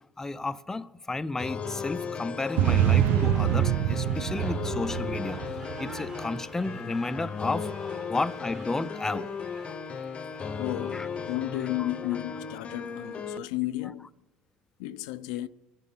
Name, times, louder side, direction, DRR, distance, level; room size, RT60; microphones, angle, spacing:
voice 1, 0.2-5.4 5.8-9.3 10.9-11.1, left 3 dB, 15° left, 0.5 m, -32 dB
sound 1, 1.4-13.4, left 6 dB, 35° left, 0.8 m, -36 dB
sound 2, 2.4-11.4, right 2 dB, 20° right, 1.5 m, -49 dB
sound 3, 2.6-6.1, right 12 dB, 70° right, 0.5 m, -25 dB
voice 2, 10.6-14.1 14.8-15.5, left 15 dB, 90° left, 0.5 m, -33 dB
24.5 x 11.0 x 3.8 m
supercardioid pair, 105°, 4 cm